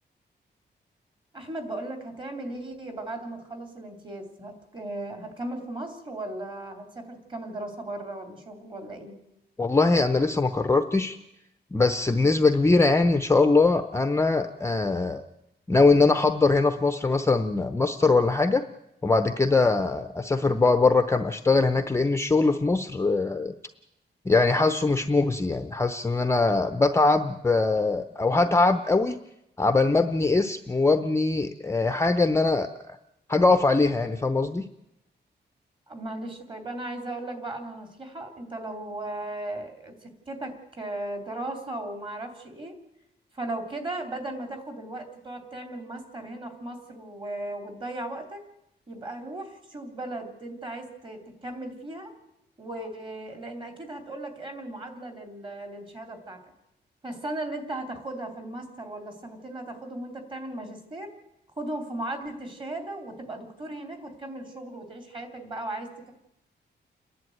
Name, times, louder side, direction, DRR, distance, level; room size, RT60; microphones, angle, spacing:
voice 1, 1.3-9.2 35.9-42.7 43.3-48.4 48.9-52.1 52.6-56.4 57.0-61.1 61.6-66.1, right 1 dB, 25° right, 5 dB, 3.2 m, -37 dB
voice 2, 9.6-11.2 11.7-15.2 15.7-18.6 19.0-23.5 24.3-29.2 29.6-33.0 33.3-34.6, left 3 dB, 15° left, 9 dB, 0.7 m, -22 dB
29.5 x 11.0 x 9.2 m, 0.85 s
wide cardioid pair, 175°, 19 cm